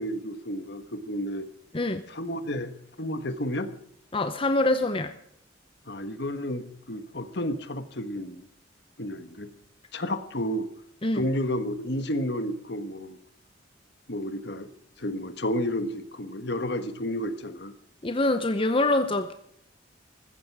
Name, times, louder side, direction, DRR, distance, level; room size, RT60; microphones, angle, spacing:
voice 1, 0.0-1.5 2.1-2.7 3.0-3.7 5.9-8.4 9.0-9.5 9.9-10.7 11.1-13.2 14.1-14.7 15.0-17.7, equal, 60° left, 10 dB, 1.5 m, -31 dB
voice 2, 4.1-5.1 11.0-11.3 18.0-19.3, left 2 dB, 30° left, 8 dB, 0.8 m, -24 dB
14.5 x 14.5 x 4.8 m, 0.71 s
head